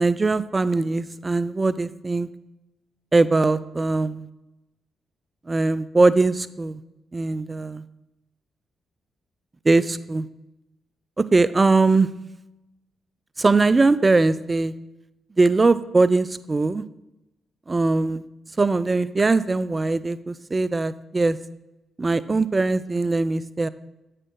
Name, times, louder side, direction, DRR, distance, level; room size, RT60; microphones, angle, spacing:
voice 1, 0.0-2.3 3.1-4.2 5.5-6.8 7.1-7.8 9.7-10.3 11.2-12.1 13.4-14.7 15.4-16.8 17.7-18.2 18.6-21.4 22.0-23.7, right 3 dB, 35° right, 16 dB, 0.4 m, -21 dB
8.7 x 6.6 x 3.8 m, 0.93 s
hypercardioid pair, 45°, 0 cm